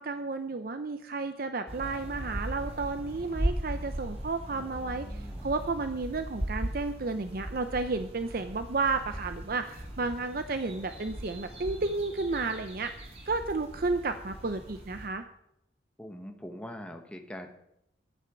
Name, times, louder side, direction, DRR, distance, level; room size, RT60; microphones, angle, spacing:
voice 1, 0.0-12.9 13.3-15.2, right 3 dB, 55° right, 8 dB, 0.6 m, -32 dB
sound 1, 1.7-15.1, right 1 dB, 35° right, 2.4 m, -38 dB
voice 2, 4.5-5.5 16.0-17.5, equal, 5° left, 4 dB, 1.2 m, -44 dB
11.5 x 9.2 x 6.2 m, 0.79 s
head